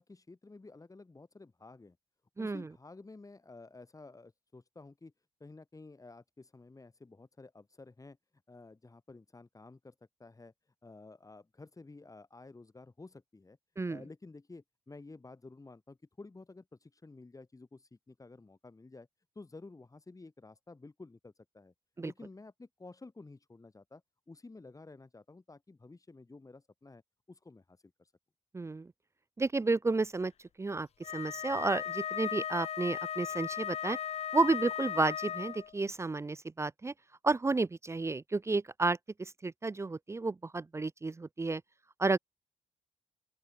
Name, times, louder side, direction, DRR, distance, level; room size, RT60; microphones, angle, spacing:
voice 1, 0.0-2.0 2.4-5.1 5.4-8.2 8.5-13.6 13.9-19.1 19.3-21.7 22.0-27.0 27.3-28.1, left 3 dB, 30° left, 5.7 m, -52 dB
voice 2, 28.5-28.9 29.4-30.3 30.6-30.9 31.1-34.0 34.3-36.9 37.2-41.6 42.0-42.2, right 3 dB, 25° right, 0.6 m, -31 dB
Wind instrument woodwind instrument, 31.0-35.7, left 9 dB, 65° left, 1.7 m, -37 dB
open air
hypercardioid pair, 40°, 12 cm